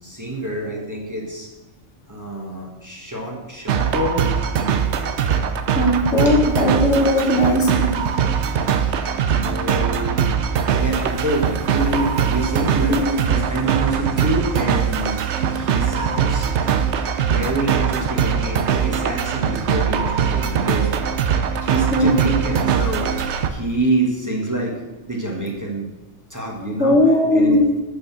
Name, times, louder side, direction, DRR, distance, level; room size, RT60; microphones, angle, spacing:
voice 1, 0.0-1.5 2.1-4.3 4.9-5.0 6.2-6.7 8.9-10.2 10.8-15.2 15.5-16.5 17.2-20.9 21.6-23.1 23.5-24.8 25.1-25.9 26.3-27.0 27.3-27.6, right 2 dB, 15° right, -2 dB, 1.5 m, -26 dB
sound 1, 3.7-23.5, right 7 dB, 65° right, 0.9 m, -21 dB
voice 2, 5.7-7.9 12.9-13.0 21.9-22.1 26.8-27.6, left 1 dB, 65° left, 1 dB, 1.8 m, -17 dB
6.7 x 6.7 x 6.0 m, 1.1 s
omnidirectional pair, 1.3 m